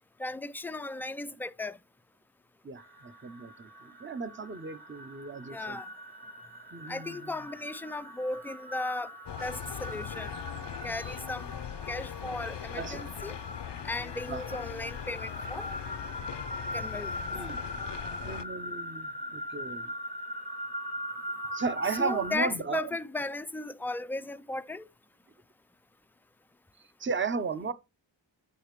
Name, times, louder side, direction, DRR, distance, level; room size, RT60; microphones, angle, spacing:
voice 1, 0.2-1.8 5.5-5.9 6.9-9.1 9.4-10.3 10.8-11.5 11.9-13.4 13.8-15.7 16.7-17.3 21.9-24.9, left 2 dB, 5° left, 0.3 m, -36 dB
sound 1, 2.8-22.4, equal, 55° right, 3.5 m, -41 dB
voice 2, 3.2-3.7 4.0-5.8 6.7-7.2 11.0-11.1 12.8-13.0 14.3-14.4 17.3-17.6 18.2-19.9 21.5-22.8 27.0-27.7, right 4 dB, 25° right, 0.7 m, -34 dB
sound 2, 9.3-18.4, left 9 dB, 65° left, 0.6 m, -40 dB
8.5 x 5.8 x 3.1 m
wide cardioid pair, 55°, 45 cm